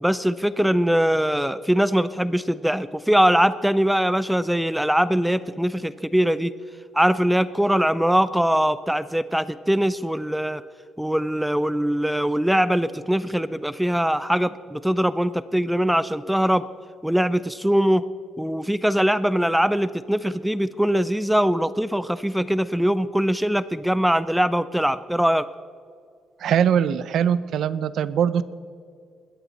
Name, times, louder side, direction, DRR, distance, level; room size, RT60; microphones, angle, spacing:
voice 1, 0.0-6.5 6.9-10.6 11.0-16.6 17.0-18.0 18.4-25.5, equal, ahead, 15 dB, 0.3 m, -22 dB
voice 2, 26.4-28.4, right 8 dB, 55° right, 16 dB, 0.6 m, -21 dB
20.5 x 14.0 x 4.1 m, 2.3 s
cardioid pair, 175°, 0 cm